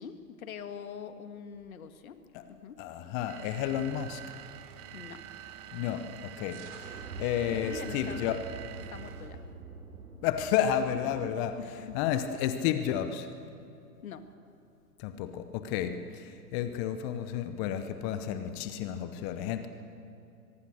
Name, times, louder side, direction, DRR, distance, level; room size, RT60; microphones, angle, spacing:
voice 1, 0.0-2.9 4.9-5.2 7.5-8.5 8.8-9.4 11.6-12.0 14.0-14.3 15.8-15.9, left 7 dB, 55° left, 9 dB, 1.8 m, -44 dB
voice 2, 2.8-4.2 5.7-6.6 7.2-8.4 10.2-11.6 11.9-13.3 15.0-19.7, left 10 dB, 20° left, 10 dB, 0.8 m, -31 dB
sound 1, 3.3-9.5, right 12 dB, 15° right, 0.7 m, -47 dB
sound 2, 6.5-12.0, right 3 dB, 60° right, 3.8 m, -45 dB
24.0 x 21.5 x 6.5 m, 2.5 s
figure-of-eight pair, 120°, 49 cm